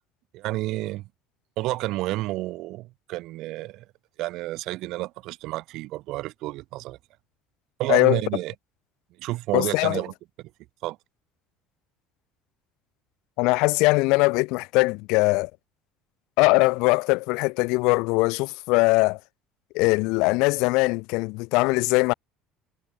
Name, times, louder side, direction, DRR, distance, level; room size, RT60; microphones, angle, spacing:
voice 1, 0.3-1.1 1.6-3.8 4.2-7.0 7.8-8.5 9.2-10.1 10.4-10.5 10.8-11.0, right 18 dB, 70° right, 1.2 m, -30 dB
voice 2, 7.9-8.2 9.5-10.0 13.4-15.5 16.4-19.2 19.7-22.1, left 26 dB, 75° left, 0.8 m, -21 dB
supercardioid pair, 95°, 0 cm